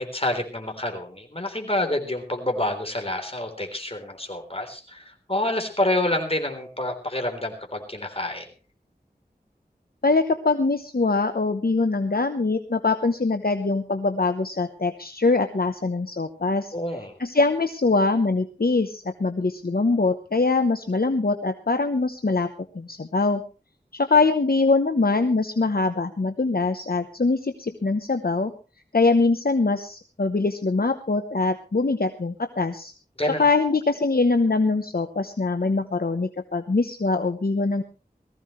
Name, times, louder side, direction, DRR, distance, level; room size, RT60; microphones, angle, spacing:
voice 1, 0.0-8.5 16.7-17.2 33.2-33.4, left 1 dB, 35° left, 4 dB, 3.6 m, -28 dB
voice 2, 10.0-16.7 17.2-22.5 22.7-23.4 23.9-28.5 28.9-32.9 33.4-37.8, left 3 dB, 65° left, 8 dB, 0.9 m, -23 dB
19.0 x 15.0 x 3.2 m, 0.33 s
wide cardioid pair, 45°, 17 cm